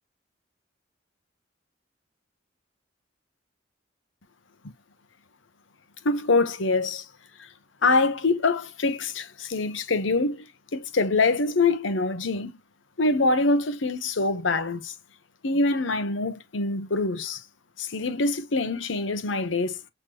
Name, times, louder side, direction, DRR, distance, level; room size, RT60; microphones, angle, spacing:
voice 1, 6.0-7.0 7.8-10.5 10.7-12.6 13.0-14.9 15.4-17.4 17.8-19.8, left 3 dB, 85° left, 0.9 m, -24 dB
5.8 x 3.0 x 2.8 m
head